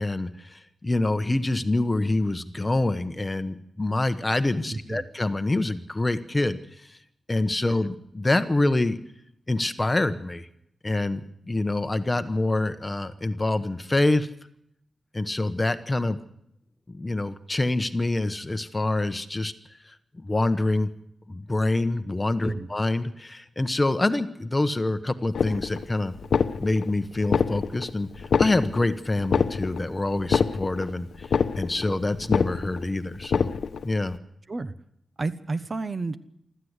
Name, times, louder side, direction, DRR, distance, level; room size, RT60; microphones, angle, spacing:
voice 1, 0.0-6.6 7.3-9.0 9.5-10.5 10.8-11.2 11.5-14.3 15.1-16.2 16.9-19.5 20.2-20.9 21.3-26.1 26.6-33.5 33.8-34.2, left 2 dB, 20° left, 10 dB, 1.1 m, -26 dB
voice 2, 4.7-5.0 22.4-22.7 34.5-34.7 35.2-36.2, right 3 dB, 35° right, 11 dB, 1.0 m, -30 dB
sound 1, 25.3-25.9 26.2-26.9 27.2-27.9 28.2-28.9 29.2-29.9 30.2-30.9 31.2-31.9 32.2-32.9 33.2-33.9, left 6 dB, 80° left, 0.9 m, -25 dB
25.0 x 14.0 x 8.2 m, 0.78 s
wide cardioid pair, 115°, 0 cm